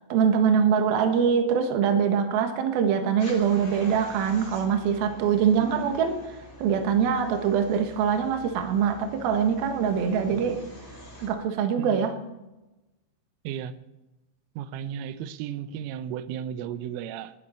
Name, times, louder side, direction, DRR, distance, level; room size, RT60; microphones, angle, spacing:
voice 1, 0.1-6.2 6.6-10.6 11.2-12.1, right 7 dB, 65° right, 5 dB, 2.6 m, -23 dB
sound 1, 3.2-11.3, equal, 5° left, 2.7 m, -46 dB
voice 2, 11.8-12.1 13.4-13.7 14.6-17.3, right 9 dB, 80° right, 11 dB, 3.3 m, -35 dB
19.5 x 11.5 x 4.4 m, 1.0 s
omnidirectional pair, 5.8 m